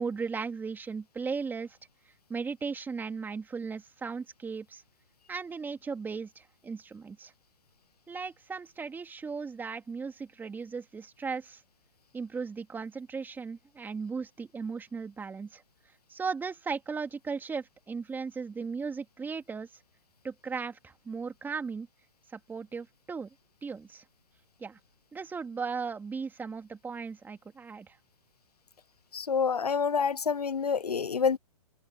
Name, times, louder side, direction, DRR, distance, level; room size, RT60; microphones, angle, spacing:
voice 1, 0.0-1.8 2.3-4.8 5.3-7.3 8.1-11.6 12.1-15.6 16.1-19.7 20.2-21.9 22.3-23.3 23.6-24.0 24.6-24.8 25.1-28.0, right 5 dB, 10° right, 2.9 m, -36 dB
voice 2, 29.1-31.4, left 6 dB, 85° left, 0.6 m, -27 dB
open air
figure-of-eight pair, 125°, 19 cm